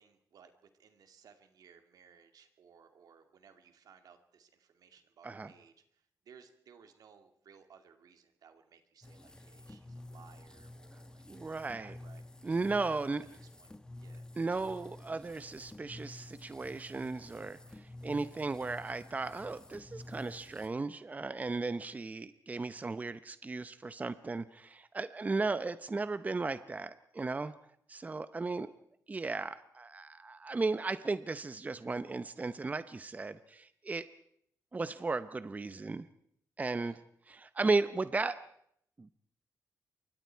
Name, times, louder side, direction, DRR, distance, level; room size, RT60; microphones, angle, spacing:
voice 1, 0.0-12.2 12.6-13.0 13.4-14.3 25.2-25.4 36.7-37.0, right 6 dB, 75° right, 7 dB, 2.3 m, -60 dB
sound 1, 9.0-20.7, left 1 dB, 10° left, 1.6 m, -51 dB
voice 2, 11.3-11.9 12.4-13.2 14.4-27.5 27.9-28.7 29.1-34.1 34.7-36.1 36.6-36.9 37.3-38.4 39.0-39.1, right 3 dB, 25° right, 13 dB, 0.8 m, -35 dB
28.0 x 23.5 x 4.6 m, 0.69 s
cardioid pair, 105°, 6 cm